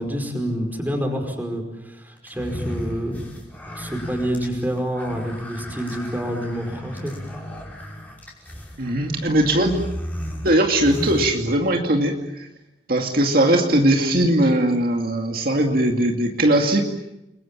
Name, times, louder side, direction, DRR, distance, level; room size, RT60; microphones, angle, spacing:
voice 1, 0.0-3.2 3.7-7.1, equal, 10° right, 4 dB, 5.0 m, -27 dB
sound 1, 2.3-12.0, equal, 10° left, 5.4 m, -35 dB
voice 2, 8.8-9.8 10.4-12.5 12.9-16.8, right 1 dB, 55° right, 2 dB, 2.3 m, -19 dB
30.0 x 22.0 x 7.5 m, 0.89 s
head